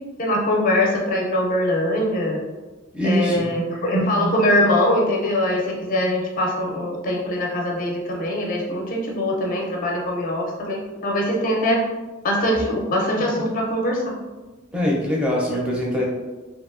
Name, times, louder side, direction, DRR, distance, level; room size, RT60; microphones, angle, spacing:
voice 1, 0.2-2.4 3.0-11.8 12.2-14.1, left 1 dB, 40° left, -1 dB, 0.6 m, -22 dB
voice 2, 2.9-3.5 14.7-16.0, equal, 5° right, -3 dB, 0.5 m, -22 dB
2.8 x 2.6 x 2.5 m, 1.2 s
head